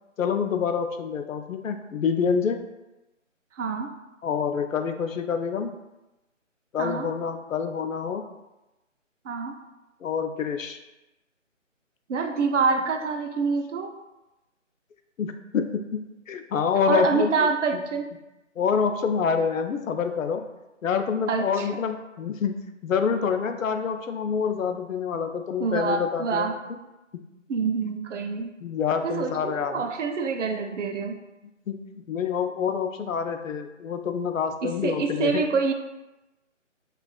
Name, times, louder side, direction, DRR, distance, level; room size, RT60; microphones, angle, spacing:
voice 1, 0.2-2.6 4.2-5.7 6.7-8.2 10.0-10.8 15.2-17.8 18.6-20.4 20.8-22.5 22.8-26.5 28.6-29.8 31.7-35.4, left 6 dB, 90° left, 7 dB, 0.5 m, -27 dB
voice 2, 3.5-3.9 6.8-7.1 9.2-9.6 12.1-13.9 16.9-18.1 21.3-21.7 25.6-26.6 27.5-28.5 29.0-31.2 34.6-35.7, right 5 dB, 65° right, 5 dB, 0.5 m, -26 dB
4.7 x 2.4 x 2.3 m, 1.0 s
hypercardioid pair, 175°, 39 cm